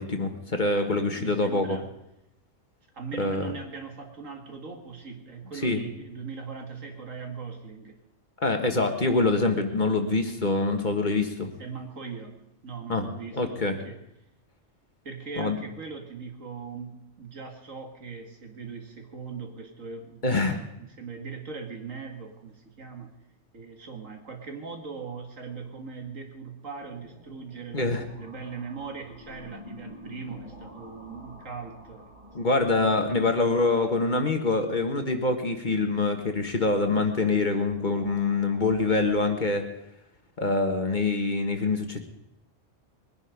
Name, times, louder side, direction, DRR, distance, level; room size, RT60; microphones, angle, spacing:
voice 1, 0.0-1.8 3.2-3.5 5.6-5.8 8.4-11.5 12.9-13.8 15.4-15.6 20.2-20.6 27.7-28.0 32.3-39.6 40.4-42.0, left 3 dB, 40° left, 5 dB, 1.6 m, -25 dB
voice 2, 1.2-1.9 2.9-8.0 11.6-14.0 15.0-23.1 23.5-32.1 33.1-33.3 33.7-34.0, right 5 dB, 85° right, 3 dB, 2.5 m, -40 dB
sound 1, 26.8-39.3, left 1 dB, 40° right, 6.3 m, -49 dB
21.5 x 10.5 x 5.2 m, 0.85 s
omnidirectional pair, 1.3 m